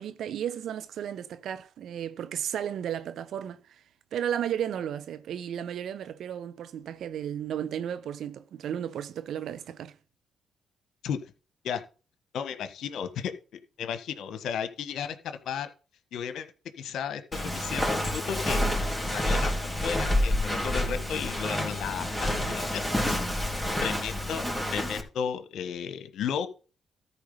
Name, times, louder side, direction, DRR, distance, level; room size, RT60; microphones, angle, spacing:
voice 1, 0.0-3.6 4.1-9.9, right 9 dB, 70° right, 0.9 m, -34 dB
voice 2, 12.3-13.3 13.8-15.7 16.1-16.5 16.8-18.6 19.0-19.6 19.8-23.1 23.8-26.5, left 8 dB, 75° left, 1.4 m, -34 dB
Walk footsteps, 17.3-25.0, left 1 dB, ahead, 3.7 m, -28 dB
13.5 x 4.6 x 5.5 m
supercardioid pair, 50°, 0 cm